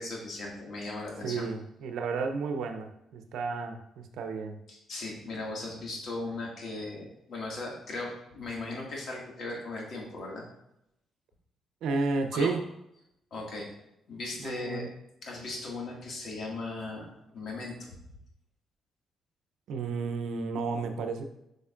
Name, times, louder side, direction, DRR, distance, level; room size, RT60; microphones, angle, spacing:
voice 1, 0.0-1.4 4.7-10.4 12.3-12.5 13.3-13.7 14.1-14.8 15.2-17.1 17.3-17.9, left 2 dB, 60° left, -2 dB, 2.0 m, -38 dB
voice 2, 1.2-4.6 11.8-12.6 14.4-14.9 19.7-21.3, right 4 dB, 80° right, 6 dB, 0.7 m, -32 dB
8.1 x 5.1 x 2.5 m, 0.81 s
cardioid pair, 90°, 0 cm